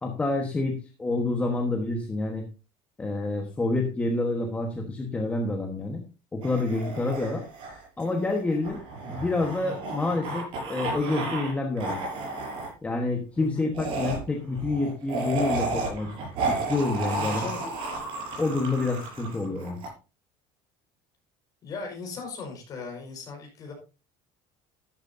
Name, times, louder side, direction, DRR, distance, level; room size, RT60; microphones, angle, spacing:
voice 1, 0.0-2.4 3.0-6.0 6.3-7.4 8.0-8.8 9.1-12.0 12.8-16.1 16.5-17.5 18.4-19.8, left 2 dB, 10° left, 2 dB, 1.2 m, -28 dB
sound 1, 6.4-11.5 11.8-12.7 13.7-19.9, right 2 dB, 45° right, 6.6 m, -32 dB
voice 2, 17.1-17.6 21.6-23.7, left 4 dB, 30° left, 2 dB, 4.9 m, -38 dB
12.5 x 12.0 x 2.7 m, 0.31 s
cardioid pair, 175°, 12 cm